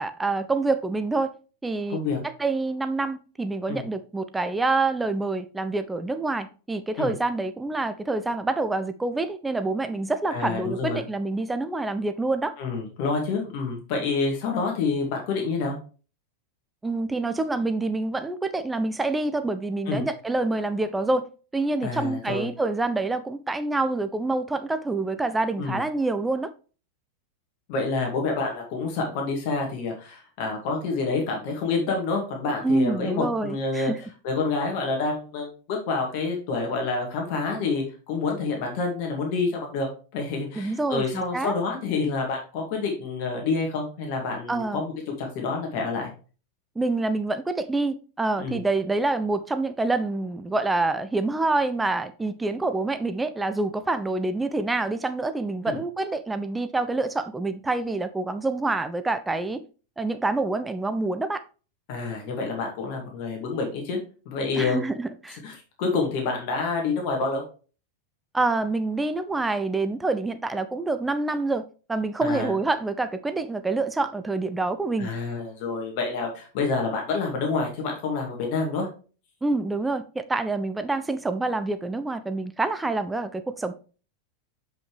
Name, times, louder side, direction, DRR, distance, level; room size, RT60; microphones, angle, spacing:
voice 1, 0.0-1.3 1.6-2.0 2.2-12.5 16.8-21.3 21.5-26.5 32.6-34.0 40.6-41.5 44.5-44.8 46.8-59.6 60.0-61.4 64.5-65.4 68.3-71.6 71.9-75.1 79.4-83.7, right 3 dB, 10° right, 0.5 m, -27 dB
voice 2, 10.3-11.0 12.6-15.8 19.9-20.0 21.8-22.5 25.6-25.8 27.7-33.9 34.2-39.9 40.1-44.9 45.2-46.1 48.4-48.6 55.7-55.8 61.9-64.0 64.3-64.8 65.3-67.4 72.2-72.5 75.0-78.9, left 4 dB, 45° left, 2.1 m, -28 dB
7.5 x 5.4 x 3.3 m
figure-of-eight pair, 90°, 0 cm